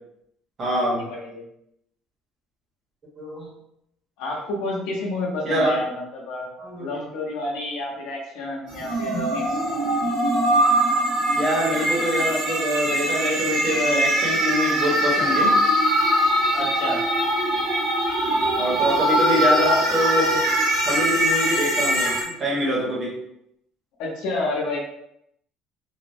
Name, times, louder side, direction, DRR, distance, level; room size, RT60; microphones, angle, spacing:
voice 1, 0.6-1.0 3.2-3.5 5.4-5.8 6.6-6.9 11.3-15.5 18.6-20.5 20.9-23.1, equal, 25° right, -4 dB, 0.9 m, -24 dB
voice 2, 4.2-6.5 6.8-9.6 16.5-17.0 24.0-24.8, left 2 dB, 75° left, -2 dB, 0.8 m, -29 dB
sound 1, 8.7-22.2, right 1 dB, 65° right, 0.8 m, -22 dB
3.3 x 2.0 x 2.6 m, 0.78 s
cardioid pair, 180°, 0 cm